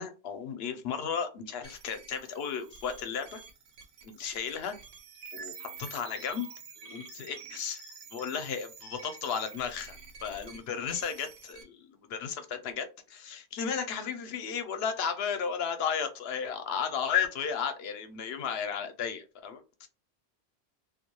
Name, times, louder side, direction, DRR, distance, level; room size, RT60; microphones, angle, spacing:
voice 1, 0.0-3.4 4.0-4.8 5.3-6.5 6.8-7.8 8.1-19.9, left 7 dB, 80° left, 8 dB, 0.8 m, -34 dB
sound 1, 1.6-11.6, right 5 dB, 80° right, 0.8 m, -48 dB
2.2 x 2.2 x 2.9 m, 0.31 s
omnidirectional pair, 1.0 m